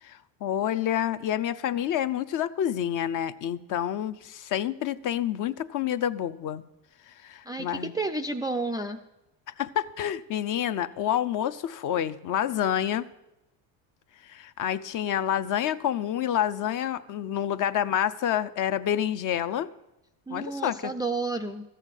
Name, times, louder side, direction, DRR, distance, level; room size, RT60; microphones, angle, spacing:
voice 1, 0.0-6.6 7.2-7.9 9.6-13.0 14.2-19.7 20.3-20.9, left 10 dB, 45° left, 13 dB, 0.6 m, -28 dB
voice 2, 7.5-9.0 20.3-21.8, right 3 dB, 10° right, 5 dB, 0.3 m, -31 dB
14.0 x 5.8 x 8.1 m, 0.92 s
cardioid pair, 115°, 43 cm